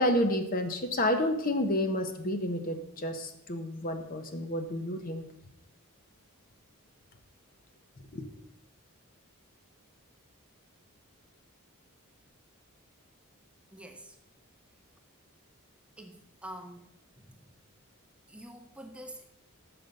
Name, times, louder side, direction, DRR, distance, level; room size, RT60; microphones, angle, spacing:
voice 1, 0.0-5.2 8.1-8.3, left 1 dB, 40° left, 7 dB, 0.7 m, -30 dB
voice 2, 13.7-14.2 16.0-16.9 17.1-17.4 18.3-19.2, right 1 dB, 5° right, 4 dB, 0.6 m, -46 dB
6.6 x 5.9 x 5.2 m, 0.80 s
head